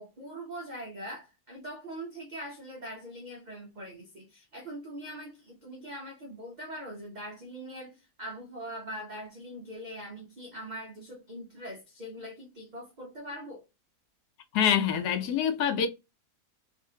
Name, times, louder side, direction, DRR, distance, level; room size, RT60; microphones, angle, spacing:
voice 1, 0.0-13.6, equal, 55° right, 0.5 m, -42 dB
voice 2, 14.5-15.9, left 8 dB, 80° left, 1.2 m, -25 dB
2.7 x 2.5 x 2.7 m
omnidirectional pair, 1.7 m